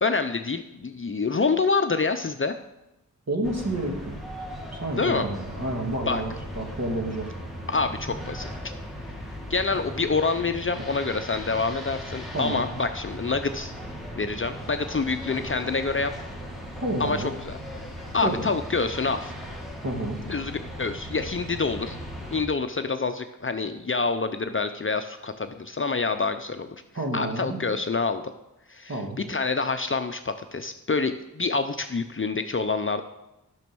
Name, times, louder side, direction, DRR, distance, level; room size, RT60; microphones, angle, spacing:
voice 1, 0.0-2.6 5.0-5.3 6.1-6.2 7.7-8.5 9.5-13.7 14.2-16.1 17.0-17.2 17.5-17.9 18.1-19.3 20.3-22.0 22.3-26.7 27.1-28.2 28.7-33.0, left 4 dB, 35° left, 8 dB, 0.6 m, -27 dB
voice 2, 3.3-4.2 4.8-7.3 12.3-12.7 16.8-17.3 18.2-18.4 19.8-20.2 26.9-27.6 28.9-29.2, right 1 dB, 45° right, 2 dB, 2.1 m, -29 dB
sound 1, 3.4-22.4, equal, ahead, 2.1 m, -38 dB
10.5 x 6.2 x 6.1 m, 0.92 s
wide cardioid pair, 65°, 35 cm